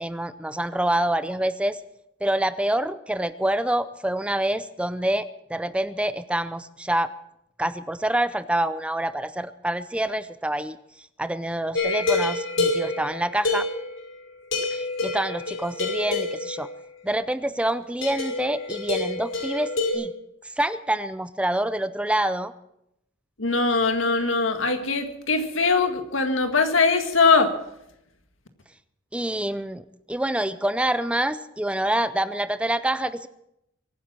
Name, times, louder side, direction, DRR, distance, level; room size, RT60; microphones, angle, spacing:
voice 1, 0.0-1.8 2.2-7.1 7.6-10.8 11.2-13.7 14.7-16.7 17.0-20.1 20.6-22.5 29.1-33.3, right 1 dB, 5° right, 14 dB, 0.5 m, -26 dB
sound 1, 11.7-14.2 14.5-16.8 18.0-19.9, left 3 dB, 75° left, 5.5 m, -27 dB
voice 2, 23.4-27.5, left 4 dB, 90° left, 7 dB, 1.9 m, -21 dB
23.0 x 9.5 x 6.1 m, 0.82 s
head